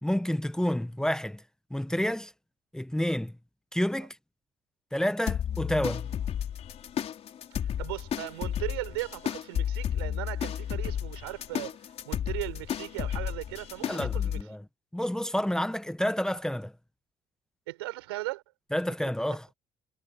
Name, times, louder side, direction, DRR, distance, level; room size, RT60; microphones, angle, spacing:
voice 1, 0.0-1.4 1.7-2.3 2.7-3.3 3.7-4.2 4.9-6.1 13.8-14.6 14.9-16.7 18.7-19.5, left 1 dB, 5° left, 1.5 m, -29 dB
sound 1, 5.3-14.4, left 9 dB, 55° left, 3.6 m, -33 dB
voice 2, 7.6-11.8 12.0-14.4 17.7-18.4, right 20 dB, 85° right, 6.2 m, -37 dB
hypercardioid pair, 55°, 13 cm